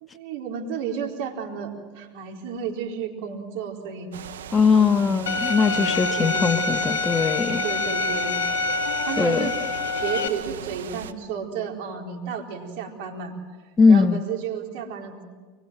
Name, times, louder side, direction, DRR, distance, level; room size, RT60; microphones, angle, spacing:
voice 1, 0.0-4.1 4.7-5.1 5.6-6.5 7.6-8.4 9.0-9.6 10.0-13.3 13.9-15.2, right 7 dB, 70° right, 2 dB, 4.2 m, -32 dB
sound 1, 4.1-11.1, right 8 dB, 85° right, 1.3 m, -39 dB
voice 2, 4.5-7.6 9.2-9.5 13.8-14.2, left 5 dB, 25° left, 11 dB, 1.2 m, -20 dB
Bowed string instrument, 5.3-10.3, left 3 dB, 80° left, 1.9 m, -26 dB
25.0 x 21.5 x 7.6 m, 1.4 s
hypercardioid pair, 95°, 0 cm